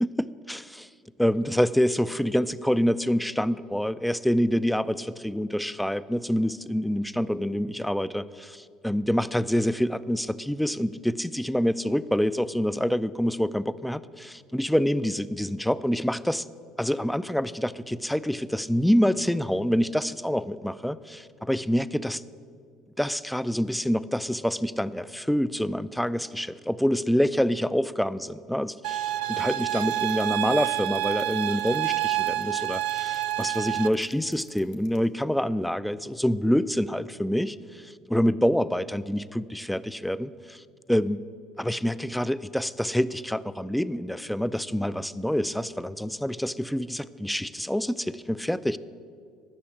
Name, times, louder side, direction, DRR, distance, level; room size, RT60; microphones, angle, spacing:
voice 1, 0.0-0.9 1.2-16.5 16.8-22.2 23.0-40.6 40.9-41.2 41.6-48.8, equal, 5° left, 16 dB, 0.4 m, -26 dB
sound 1, 28.8-33.9, right 15 dB, 80° right, 0.4 m, -28 dB
sound 2, 29.6-35.0, left 9 dB, 75° left, 1.6 m, -52 dB
12.0 x 6.2 x 8.4 m, 2.2 s
supercardioid pair, 85°, 0 cm